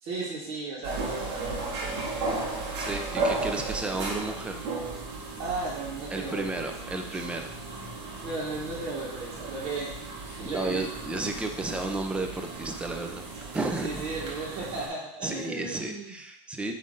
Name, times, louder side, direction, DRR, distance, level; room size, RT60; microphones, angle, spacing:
voice 1, 0.0-2.3 5.1-6.7 8.2-10.0 10.2-10.8 11.1-11.4 13.8-16.1, right 3 dB, 40° right, -4 dB, 1.8 m, -35 dB
sound 1, 0.8-14.9, right 3 dB, 80° right, 2.0 m, -35 dB
voice 2, 2.8-4.7 6.1-7.6 10.4-14.0 15.2-16.7, right 2 dB, 5° right, 4 dB, 0.5 m, -33 dB
9.1 x 3.3 x 3.9 m, 0.72 s
supercardioid pair, 160°, 15 cm